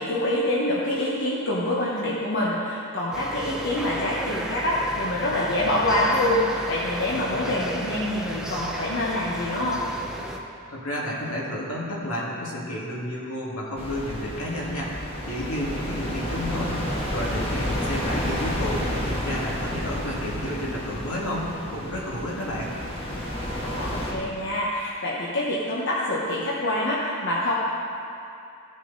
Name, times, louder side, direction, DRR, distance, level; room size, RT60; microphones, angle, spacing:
voice 1, 0.0-9.8 23.6-27.5, left 1 dB, 55° left, -6 dB, 1.2 m, -26 dB
sound 1, 3.1-10.4, equal, 5° right, 0.6 m, -34 dB
voice 2, 10.7-16.8 17.1-22.7, left 1 dB, 75° left, -4 dB, 2.3 m, -31 dB
sound 2, 13.8-24.1, equal, 25° left, 1.6 m, -30 dB
16.0 x 6.4 x 4.1 m, 2.6 s
head